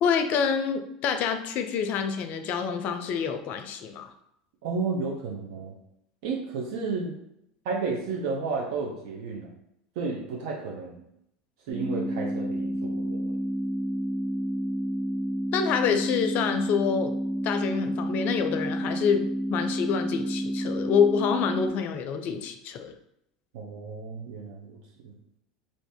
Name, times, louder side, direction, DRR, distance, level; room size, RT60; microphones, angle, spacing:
voice 1, 0.0-4.1 15.5-17.1 17.4-19.2 19.5-22.9, left 7 dB, 50° left, 8 dB, 0.4 m, -27 dB
voice 2, 4.6-5.7 6.2-7.1 7.6-9.5 10.0-11.0 11.7-13.4 23.5-25.1, right 4 dB, 70° right, -1 dB, 0.7 m, -32 dB
sound 1, 11.7-21.7, equal, 20° right, 1.2 m, -30 dB
2.6 x 2.6 x 3.6 m, 0.77 s
hypercardioid pair, 90°, 3 cm